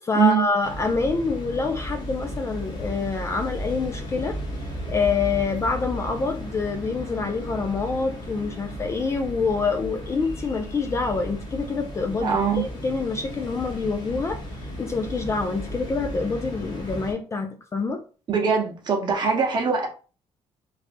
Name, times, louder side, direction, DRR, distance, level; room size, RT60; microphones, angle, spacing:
voice 1, 0.0-4.4 4.9-14.4 14.8-18.0, left 4 dB, 25° left, 0.3 m, -26 dB
sound 1, 0.6-17.1, equal, 40° left, 0.9 m, -35 dB
voice 2, 12.2-12.6 18.3-19.9, right 6 dB, 40° right, 0.9 m, -22 dB
3.3 x 2.5 x 2.5 m
cardioid pair, 165°, 11 cm